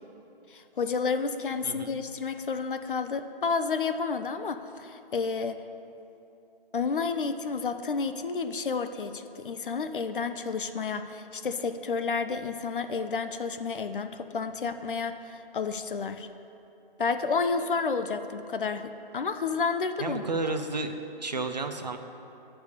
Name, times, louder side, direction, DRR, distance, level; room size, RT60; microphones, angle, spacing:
voice 1, 0.5-5.6 6.7-16.3 17.0-18.9 19.1-20.2, left 5 dB, 60° left, 9 dB, 0.5 m, -30 dB
voice 2, 1.6-2.0 20.0-20.9 21.2-22.0, right 3 dB, 45° right, 6 dB, 0.5 m, -32 dB
9.7 x 3.4 x 6.6 m, 2.8 s
hypercardioid pair, 180°, 29 cm